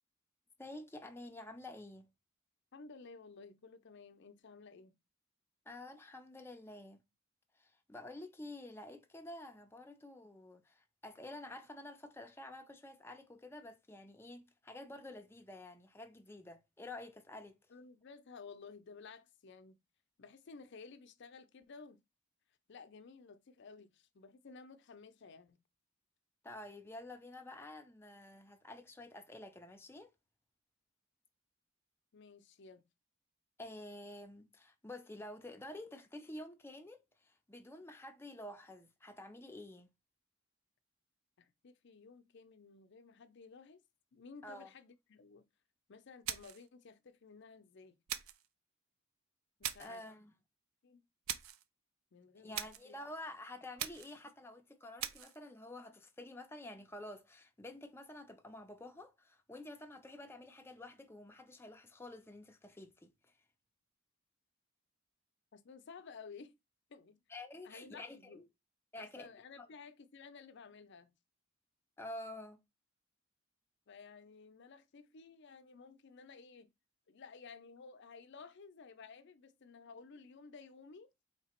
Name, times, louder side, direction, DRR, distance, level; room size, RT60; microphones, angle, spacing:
voice 1, 0.6-2.1 5.7-7.0 7.6-17.6 26.4-30.1 33.6-39.9 44.4-44.7 49.8-50.3 52.4-63.1 67.3-68.4 68.9-69.3 69.6-69.7 72.0-72.6, left 1 dB, 10° left, 0.5 m, -49 dB
voice 2, 2.7-5.0 17.7-19.8 20.2-22.0 22.7-25.6 32.1-32.8 41.4-43.8 44.1-45.4 45.9-48.0 49.6-50.0 50.8-51.0 52.1-53.0 65.5-66.5 66.9-67.2 67.6-68.4 69.0-71.1 73.9-76.7 77.1-81.1, left 4 dB, 60° left, 0.6 m, -54 dB
sound 1, 46.2-46.7 48.1-48.5 49.6-50.0 51.3-51.6 52.5-52.9 53.8-54.2 55.0-55.4, right 10 dB, 85° right, 0.4 m, -41 dB
3.4 x 2.9 x 4.3 m
head